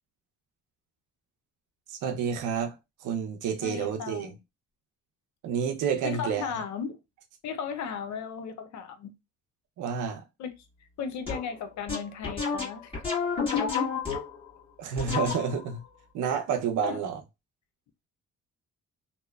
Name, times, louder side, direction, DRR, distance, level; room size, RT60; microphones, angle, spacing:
voice 1, 1.9-2.7 3.0-4.3 5.4-6.5 9.8-10.2 14.8-15.8 16.1-17.2, right 7 dB, 80° right, 0.6 m, -29 dB
voice 2, 3.6-4.3 6.0-7.0 7.4-9.1 10.4-10.5 11.0-12.9 13.4-14.0 16.8-17.0, left 7 dB, 70° left, 0.6 m, -35 dB
sound 1, 11.3-11.5 11.9-14.5 15.0-15.7, left 5 dB, 20° left, 1.4 m, -31 dB
2.7 x 2.1 x 2.2 m
cardioid pair, 90°, 30 cm